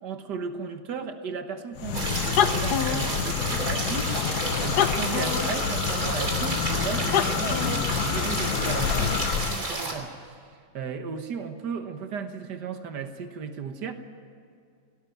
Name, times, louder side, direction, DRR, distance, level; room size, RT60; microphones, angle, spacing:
voice 1, 0.0-10.5 10.7-13.9, right 6 dB, 90° right, 7 dB, 2.0 m, -35 dB
Tokeh on a quiet beach, 1.8-9.6, left 8 dB, 75° left, 1.4 m, -27 dB
sound 1, 1.9-9.9, right 2 dB, 60° right, 3.6 m, -31 dB
18.0 x 17.5 x 9.3 m, 2.3 s
omnidirectional pair, 1.8 m